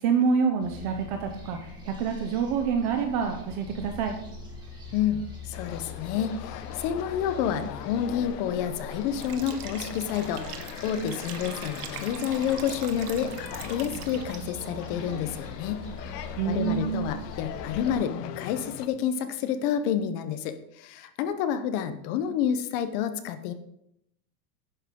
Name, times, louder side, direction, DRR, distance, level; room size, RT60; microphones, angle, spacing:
voice 1, 0.0-4.1 16.4-17.1, right 6 dB, 25° right, 6 dB, 0.4 m, -27 dB
sound 1, 0.6-17.9, left 2 dB, 10° right, 2.0 m, -42 dB
voice 2, 4.9-15.8 16.4-23.5, left 8 dB, 35° left, 10 dB, 0.7 m, -29 dB
sound 2, 5.5-18.9, left 11 dB, 75° left, 0.9 m, -40 dB
Liquid, 9.2-14.6, right 11 dB, 65° right, 1.3 m, -43 dB
11.0 x 9.6 x 3.6 m, 0.78 s
supercardioid pair, 170°, 49 cm